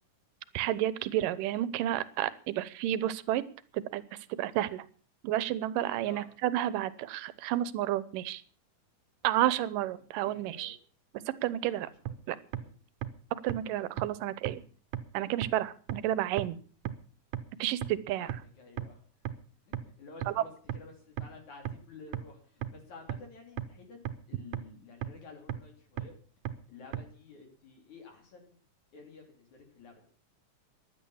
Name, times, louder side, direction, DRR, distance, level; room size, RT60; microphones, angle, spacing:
voice 1, 0.5-3.4 3.7-4.0 4.3-4.9 5.2-8.4 9.2-10.8 11.4-11.9 12.3-12.4 13.4-14.6 15.1-16.6 17.6-18.3 20.3-20.4, right 13 dB, 80° right, 17 dB, 2.5 m, -31 dB
voice 2, 10.2-10.8 12.1-12.7 18.2-19.0 19.7-24.0 24.3-26.1 26.7-28.6 28.9-30.0, left 4 dB, 60° left, 2 dB, 4.3 m, -52 dB
sound 1, 12.1-12.2 12.5-12.6 13.0-13.1 13.5-13.6 14.0-14.1 14.5-14.6 14.9-15.0 15.4-15.5 15.9-16.0 16.4-16.5 16.9-17.0 17.3-17.4 17.8-17.9 18.3-18.4 18.8-18.9 19.3-19.4 19.7-19.8 20.2-20.3 20.7-20.8 21.2-21.3 21.7-21.8 22.1-22.2 22.6-22.7 23.1-23.2 23.6-23.7 24.1-24.2 24.5-24.6 25.0-25.1 25.5-25.6 26.0-26.1 26.5-26.6 26.9-27.0, right 11 dB, 65° right, 2.1 m, -33 dB
16.0 x 11.0 x 7.1 m, 0.42 s
omnidirectional pair, 3.8 m